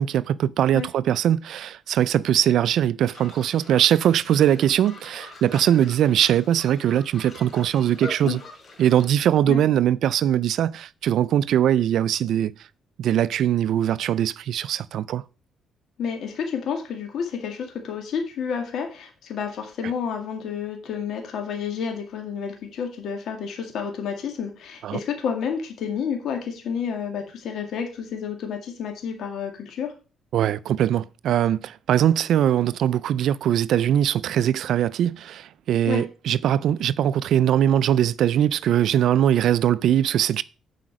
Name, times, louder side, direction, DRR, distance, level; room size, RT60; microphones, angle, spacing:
voice 1, 0.0-8.4 8.8-12.5 13.0-15.2 24.8-25.0 30.3-40.4, right 10 dB, 75° right, 0.3 m, -21 dB
sound 1, 3.1-9.1, left 2 dB, 45° left, 2.8 m, -43 dB
voice 2, 16.0-29.9 35.9-36.0, left 7 dB, 70° left, 2.0 m, -30 dB
7.7 x 5.0 x 6.1 m
cardioid pair, 90°, 0 cm